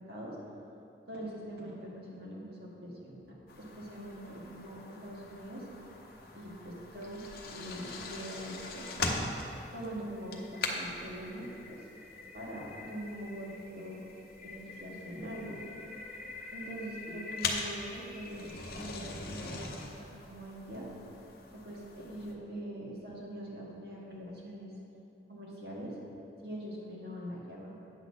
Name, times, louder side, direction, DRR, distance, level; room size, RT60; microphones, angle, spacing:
voice 1, 1.1-5.7 6.3-7.2 7.5-8.8 9.7-11.8 12.3-14.0 14.4-15.6 16.5-20.9 21.5-24.7 25.3-25.9 26.4-27.8, equal, 60° right, -4 dB, 1.6 m, -43 dB
Sliding Glass Door, 3.5-22.3, left 3 dB, 55° left, 0.7 m, -42 dB
sound 1, 6.7-19.9, left 3 dB, 5° right, 1.5 m, -50 dB
9.1 x 4.0 x 6.2 m, 2.8 s
head